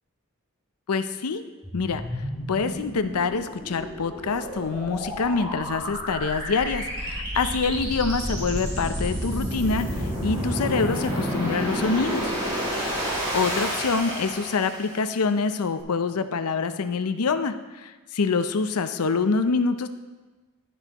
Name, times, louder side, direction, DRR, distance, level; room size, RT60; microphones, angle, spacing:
voice 1, 0.9-1.4 1.7-2.0 2.5-12.3 13.3-19.9, left 4 dB, 85° left, 10 dB, 0.6 m, -26 dB
sound 1, 1.6-15.0, equal, 20° right, 3.8 m, -30 dB
12.0 x 10.0 x 3.0 m, 1.2 s
head